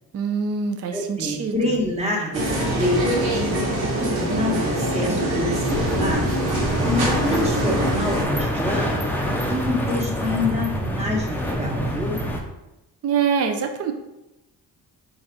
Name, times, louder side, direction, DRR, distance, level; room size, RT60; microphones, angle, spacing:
voice 1, 0.1-1.8 13.0-13.9, right 6 dB, 40° right, 5 dB, 0.5 m, -24 dB
voice 2, 0.9-3.7 4.0-6.2 6.8-9.1 9.5-12.2, left 1 dB, 15° right, -2 dB, 1.1 m, -27 dB
sound 1, 2.3-8.2, right 1 dB, 75° right, 1.3 m, -24 dB
sound 2, 5.7-12.4, equal, 5° left, 0.5 m, -26 dB
4.1 x 2.5 x 4.5 m, 0.94 s
cardioid pair, 120°, 37 cm